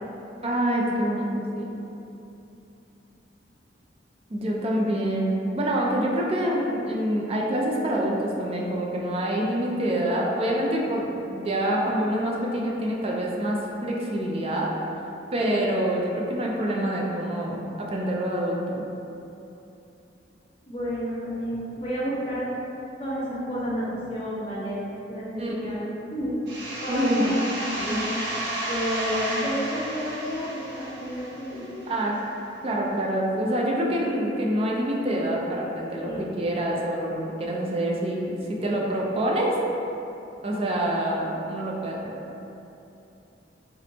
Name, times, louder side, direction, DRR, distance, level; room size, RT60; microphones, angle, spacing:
voice 1, 0.4-1.8 4.3-14.7 15.3-18.9 25.4-25.7 26.9-27.2 27.9-28.2 31.9-32.1 32.6-39.6 40.4-42.1, right 1 dB, 35° right, -3 dB, 0.4 m, -26 dB
voice 2, 20.7-22.5 23.0-24.8 25.1-26.4 26.8-28.1 28.7-31.8 36.1-36.3, equal, 35° left, -10 dB, 1.2 m, -30 dB
sound 1, 26.5-31.9, right 1 dB, 70° right, 1.0 m, -32 dB
3.8 x 3.4 x 2.8 m, 2.9 s
head